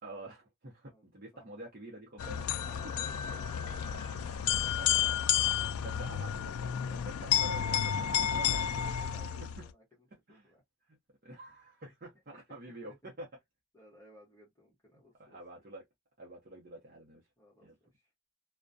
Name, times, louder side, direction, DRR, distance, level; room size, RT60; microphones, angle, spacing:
voice 1, 0.0-2.4 2.8-2.9 4.6-5.1 5.4-8.9 9.6-9.7 10.3-10.5 10.9-11.0 11.2-13.3 15.2-15.8 16.2-17.2 17.6-17.8, right 1 dB, 45° right, 0.7 m, -48 dB
voice 2, 1.3-1.6 2.7-3.8 8.9-9.8 10.3-10.6 12.5-12.6 12.8-13.1 13.7-15.6 17.4-18.0, left 1 dB, 15° left, 0.9 m, -60 dB
sound 1, 2.2-9.7, left 9 dB, 90° left, 0.3 m, -31 dB
2.3 x 2.1 x 2.5 m
head